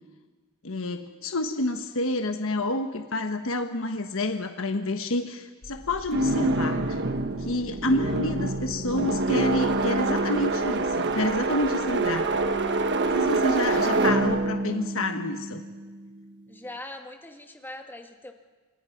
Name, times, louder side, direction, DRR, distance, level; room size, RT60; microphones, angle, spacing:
voice 1, 0.6-7.0 7.4-12.3 13.1-15.6, left 2 dB, 70° left, 6 dB, 1.3 m, -29 dB
sound 1, 5.6-14.5, left 1 dB, 35° left, 3.0 m, -46 dB
sound 2, 6.1-16.1, right 2 dB, 55° right, 1.4 m, -26 dB
voice 2, 13.6-13.9 16.5-18.3, left 1 dB, 10° left, 4 dB, 2.1 m, -42 dB
29.5 x 27.0 x 6.0 m, 1.3 s
head